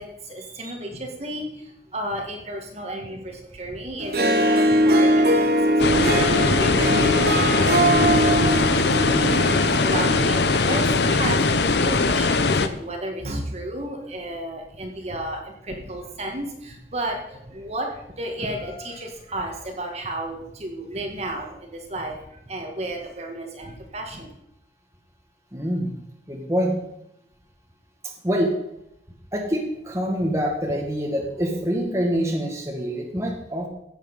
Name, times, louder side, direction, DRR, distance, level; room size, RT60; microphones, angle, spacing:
voice 1, 0.0-24.3, right 1 dB, 35° right, 2 dB, 1.9 m, -33 dB
Harp, 4.0-11.4, equal, 60° right, 1.3 m, -22 dB
sound 1, 5.8-12.7, left 3 dB, 75° left, 0.8 m, -20 dB
voice 2, 9.1-9.6 25.5-25.9 26.3-26.7 28.2-28.5 29.3-33.7, equal, 15° right, 0 dB, 1.9 m, -25 dB
16.5 x 7.4 x 5.6 m, 0.79 s
head